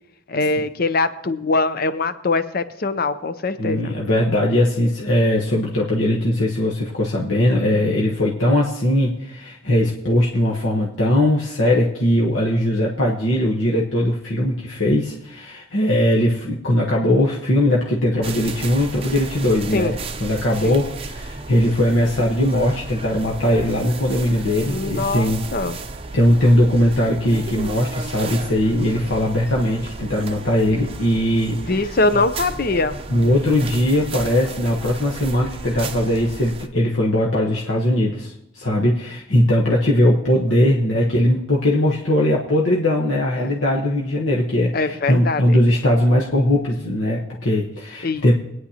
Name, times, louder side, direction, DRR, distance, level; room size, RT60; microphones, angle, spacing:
voice 1, 0.3-3.9 19.7-19.9 20.6-20.8 24.7-25.8 31.7-33.0 43.4-43.5 44.7-45.6 48.0-48.2, left 3 dB, 45° left, 12 dB, 0.6 m, -22 dB
voice 2, 3.6-25.4 26.1-31.7 33.1-48.3, left 1 dB, 70° left, -3 dB, 1.2 m, -20 dB
sound 1, 18.2-36.7, right 3 dB, 30° right, 0.6 m, -34 dB
23.5 x 9.5 x 2.9 m, 0.87 s
head